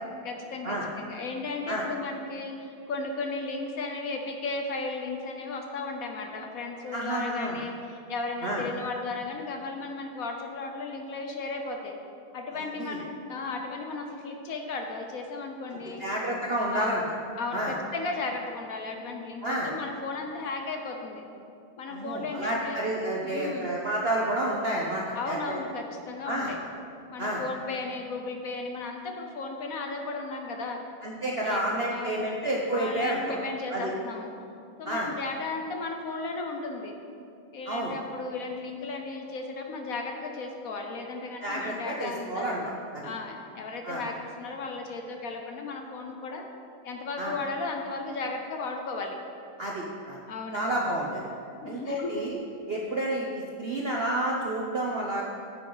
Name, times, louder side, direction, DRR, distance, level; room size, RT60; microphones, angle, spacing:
voice 1, 0.2-11.9 12.3-16.0 16.6-16.9 17.4-21.2 21.8-22.8 23.2-23.7 25.1-26.6 27.1-30.8 31.4-31.6 31.9-32.3 32.7-34.3 34.8-37.0 37.5-42.6 43.0-46.4 46.8-49.2 50.3-50.7 51.6-52.3, left 3 dB, 60° left, 3 dB, 0.9 m, -35 dB
voice 2, 6.9-7.6 8.4-8.6 12.8-13.0 15.7-17.0 17.5-17.7 19.4-19.7 21.9-25.6 26.3-26.5 27.2-27.4 31.0-33.4 33.7-33.9 34.9-35.1 37.7-37.9 41.4-43.0 43.8-44.0 47.2-47.3 49.6-50.2 50.5-51.2 51.6-52.4 52.7-55.2, right 1 dB, 75° right, -3 dB, 0.5 m, -30 dB
9.9 x 8.2 x 3.9 m, 2.5 s
omnidirectional pair, 2.2 m